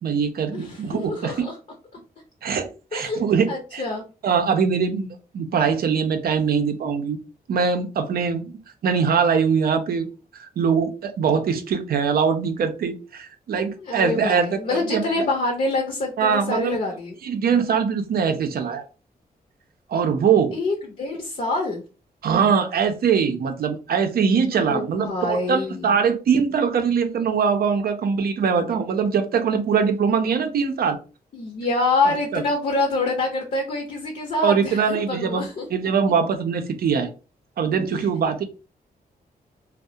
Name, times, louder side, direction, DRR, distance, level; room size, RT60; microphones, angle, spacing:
voice 1, 0.0-1.5 2.4-3.8 4.2-5.1 5.3-7.2 7.5-8.5 8.8-10.1 10.3-15.1 16.2-16.8 17.2-18.8 19.9-20.6 22.2-31.0 32.0-32.4 34.4-37.1 37.6-38.4, right 6 dB, 70° right, 0.5 m, -22 dB
voice 2, 0.5-1.6 2.9-4.0 13.8-17.1 20.5-21.8 24.5-26.0 31.3-35.7 37.9-38.1, left 2 dB, 50° left, 0.6 m, -26 dB
2.3 x 2.0 x 2.7 m
cardioid pair, 90°, 16 cm